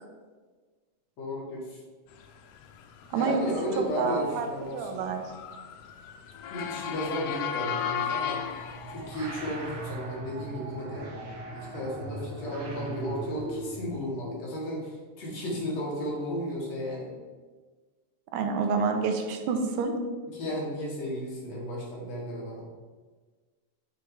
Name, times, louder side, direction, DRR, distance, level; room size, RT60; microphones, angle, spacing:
voice 1, 1.2-1.8 3.1-5.2 6.5-8.4 8.9-11.1 11.5-17.1 20.3-22.7, equal, 60° left, -4 dB, 2.6 m, -34 dB
Motor vehicle (road) / Siren, 2.6-9.9, left 8 dB, 85° left, 1.5 m, -36 dB
voice 2, 4.0-4.5 4.7-5.2 18.3-19.9, right 5 dB, 90° right, 5 dB, 2.2 m, -28 dB
sound 1, 8.4-14.0, right 2 dB, 60° right, 1.5 m, -39 dB
8.5 x 3.5 x 4.7 m, 1.4 s
omnidirectional pair, 3.6 m